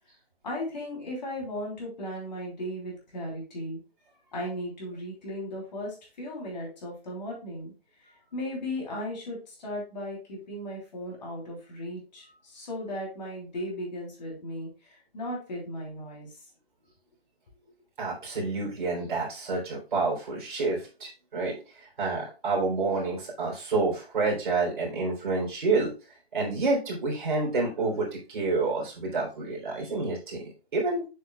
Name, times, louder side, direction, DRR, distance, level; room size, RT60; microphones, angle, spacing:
voice 1, 0.4-3.8 4.3-7.7 8.0-16.3, left 1 dB, 45° left, -2 dB, 3.2 m, -36 dB
voice 2, 18.0-21.6 22.0-25.9 26.3-31.1, right 3 dB, 50° right, -2 dB, 3.3 m, -28 dB
7.2 x 6.3 x 2.2 m, 0.32 s
hypercardioid pair, 170°, 32 cm